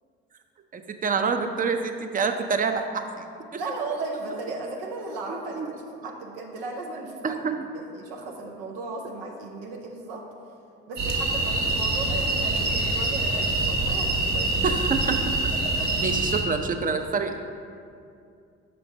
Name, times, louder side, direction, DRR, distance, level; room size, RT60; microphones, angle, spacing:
voice 1, 0.7-3.3 3.5-3.6 5.3-5.7 7.2-7.7 14.6-15.2 16.0-17.4, right 5 dB, 30° right, 6 dB, 0.5 m, -27 dB
voice 2, 3.6-5.8 6.0-7.4 7.7-10.2 10.9-14.8 15.6-15.9, right 3 dB, 85° right, 0 dB, 0.6 m, -35 dB
sound 1, 11.0-16.4, right 2 dB, 65° right, 1.1 m, -25 dB
5.6 x 3.3 x 5.2 m, 2.4 s
hypercardioid pair, 55°, 29 cm